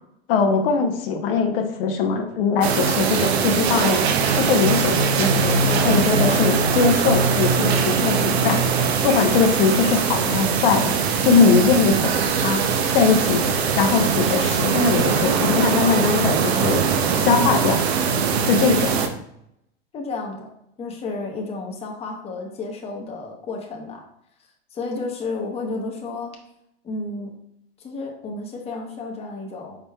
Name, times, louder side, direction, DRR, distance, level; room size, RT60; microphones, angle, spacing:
voice 1, 0.3-4.0 4.4-8.6 9.0-10.9 11.2-12.1 12.4-12.6 12.9-13.5 13.7-16.8 17.2-17.8 18.4-18.9, left 5 dB, 65° left, 3 dB, 0.8 m, -20 dB
sound 1, 2.6-19.1, right 5 dB, 85° right, 0.7 m, -21 dB
voice 2, 19.9-20.5 20.8-24.0 24.7-26.3 26.8-27.3 27.8-29.8, left 3 dB, 20° left, 0 dB, 0.8 m, -31 dB
4.9 x 4.2 x 2.3 m, 0.78 s
hypercardioid pair, 125°, 31 cm